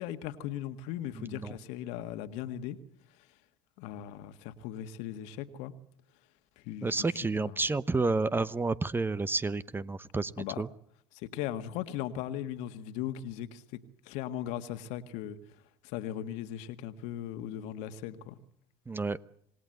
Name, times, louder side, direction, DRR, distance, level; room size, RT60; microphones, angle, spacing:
voice 1, 0.0-2.8 3.8-5.7 6.6-7.5 10.4-10.6 11.3-13.6 14.1-15.4 15.8-18.4, left 11 dB, 65° left, 10 dB, 1.8 m, -38 dB
voice 2, 1.1-1.6 6.8-10.7 18.9-19.2, right 3 dB, 15° right, 17 dB, 0.9 m, -30 dB
27.0 x 19.0 x 7.9 m, 0.68 s
hypercardioid pair, 75°, 12 cm